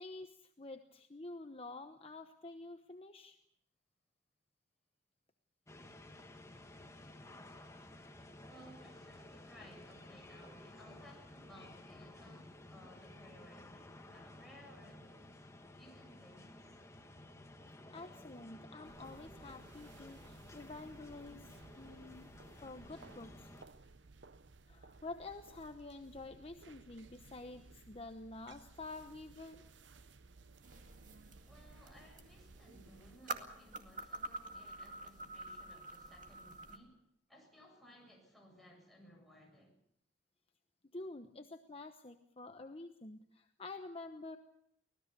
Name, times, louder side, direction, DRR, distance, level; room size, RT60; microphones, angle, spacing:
voice 1, 0.0-3.4 17.9-23.7 24.7-29.6 40.9-44.4, left 2 dB, 30° left, 6 dB, 1.0 m, -49 dB
sound 1, 5.7-23.6, left 1 dB, 15° left, 1.7 m, -55 dB
voice 2, 8.5-16.8 31.5-37.0 37.3-39.8, equal, ahead, 0 dB, 7.2 m, -60 dB
sound 2, 18.8-33.2, right 3 dB, 70° right, 0.9 m, -59 dB
sound 3, 30.6-36.8, right 2 dB, 45° right, 2.1 m, -48 dB
24.5 x 18.5 x 6.8 m, 0.71 s
head